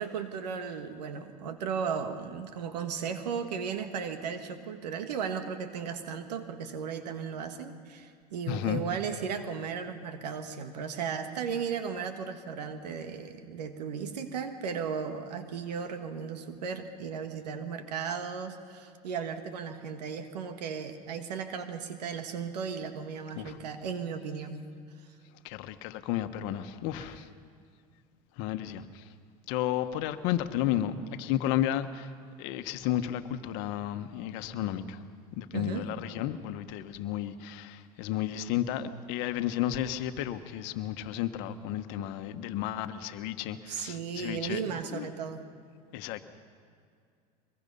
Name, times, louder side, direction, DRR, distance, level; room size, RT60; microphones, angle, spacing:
voice 1, 0.0-24.7 35.5-35.9 43.7-45.4, right 6 dB, 90° right, 8 dB, 1.6 m, -35 dB
voice 2, 8.5-8.8 23.4-23.6 25.4-27.3 28.4-29.0 29.5-32.1 32.4-35.0 35.4-44.6 44.9-45.1 45.9-46.2, left 12 dB, 65° left, 9 dB, 1.3 m, -32 dB
23.5 x 21.5 x 5.5 m, 2.3 s
hypercardioid pair, 90°, 20 cm